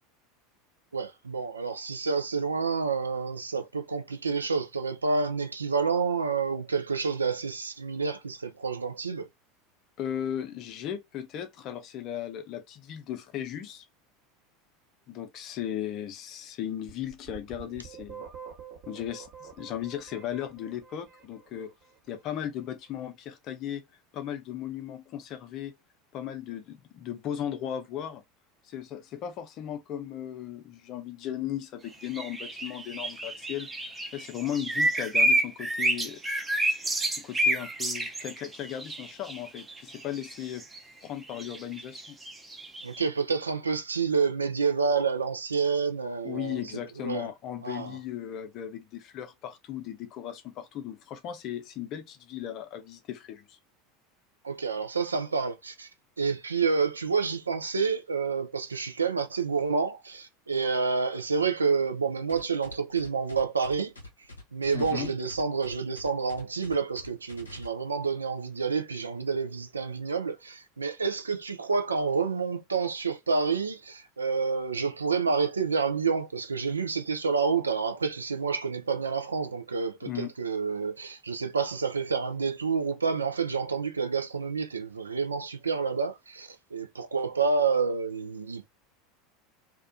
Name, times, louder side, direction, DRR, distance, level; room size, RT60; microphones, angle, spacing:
voice 1, 0.9-9.3 42.8-47.3 47.6-48.0 54.4-55.9 56.2-63.9 64.5-88.7, right 5 dB, 80° right, 0.3 m, -29 dB
voice 2, 10.0-13.9 15.1-18.2 18.9-21.7 22.1-23.8 24.1-25.7 26.1-28.2 28.6-33.7 34.1-36.2 37.1-40.6 41.0-42.2 46.2-53.6 64.7-65.1 80.1-80.3, left 10 dB, 45° left, 0.5 m, -36 dB
sound 1, 16.9-21.7, right 7 dB, 50° right, 0.9 m, -46 dB
sound 2, 32.0-40.3 40.6-40.8 41.4-43.0, right 1 dB, 10° right, 0.5 m, -29 dB
sound 3, 62.3-67.7, left 2 dB, 80° left, 0.7 m, -45 dB
2.3 x 2.2 x 2.5 m
figure-of-eight pair, 75°, 0 cm